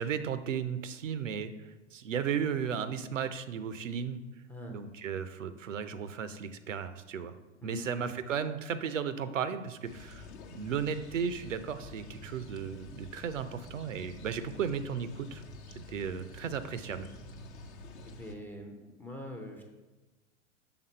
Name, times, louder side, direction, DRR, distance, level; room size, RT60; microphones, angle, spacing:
voice 1, 0.0-1.5 1.9-4.2 4.7-7.3 7.6-10.3 10.5-15.4 15.9-17.1, right 7 dB, 80° right, 12 dB, 0.6 m, -35 dB
voice 2, 7.6-8.0 17.5-19.6, left 1 dB, 5° left, 2 dB, 0.4 m, -45 dB
sound 1, 9.8-18.3, left 2 dB, 60° left, 0.9 m, -49 dB
5.9 x 3.6 x 5.3 m, 1.2 s
figure-of-eight pair, 95°, 37 cm